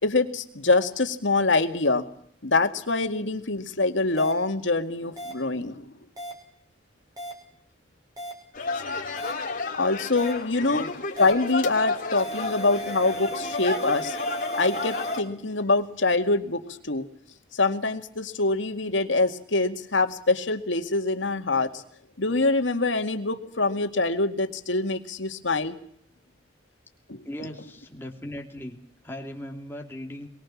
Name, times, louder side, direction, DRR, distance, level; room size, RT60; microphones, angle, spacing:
voice 1, 0.0-2.0 2.4-5.9 9.8-10.8 11.2-14.2 14.6-17.0 17.5-21.8 22.2-25.7 27.1-27.2, left 3 dB, 85° left, 7 dB, 2.2 m, -25 dB
sound 1, 4.2-4.3 5.2-5.3 6.2-6.3 7.2-7.3 8.2-8.3 9.2-9.3 10.2-10.3 11.2-11.3 12.2-15.2, right 1 dB, 20° right, 5.2 m, -35 dB
sound 2, 8.5-15.2, left 3 dB, 50° left, 3.2 m, -32 dB
voice 2, 10.6-10.9 27.2-28.8 29.0-30.3, equal, 10° left, 2 dB, 3.2 m, -38 dB
23.0 x 19.5 x 7.3 m, 0.64 s
head